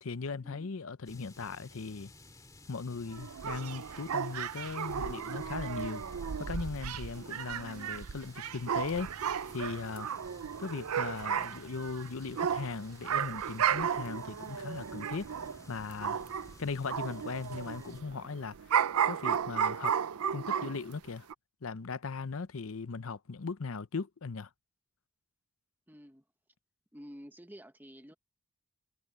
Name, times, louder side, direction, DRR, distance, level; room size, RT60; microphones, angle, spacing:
voice 1, 0.0-2.1 2.7-6.0 6.4-9.1 9.5-10.1 10.6-15.3 15.7-16.2 16.6-18.7 19.1-19.9 20.3-21.3 21.6-24.5, left 4 dB, 70° left, 0.7 m, -38 dB
sound 1, 1.1-18.0, left 1 dB, 15° left, 2.3 m, -55 dB
sound 2, 3.1-16.5 16.9-20.9 21.3-21.4, right 8 dB, 90° right, 0.5 m, -34 dB
voice 2, 25.9-26.2 26.9-28.1, equal, 10° right, 1.3 m, -50 dB
head